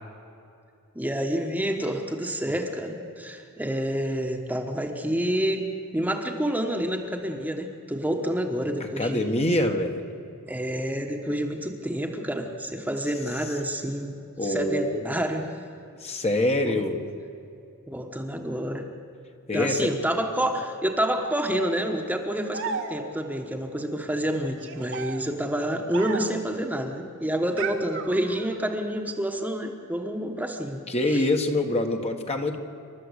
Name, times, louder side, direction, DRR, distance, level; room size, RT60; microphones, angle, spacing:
voice 1, 0.9-5.6 5.9-9.2 10.5-15.5 16.6-16.8 17.9-18.9 19.5-30.8, equal, 5° right, 3 dB, 1.3 m, -28 dB
voice 2, 9.0-10.0 14.4-15.0 16.0-17.0 19.5-19.9 30.9-32.6, left 1 dB, 30° left, 4 dB, 1.5 m, -25 dB
sound 1, 22.5-23.4 24.5-26.5 27.6-28.7, right 5 dB, 60° right, 1.5 m, -35 dB
28.0 x 12.5 x 8.2 m, 2.6 s
head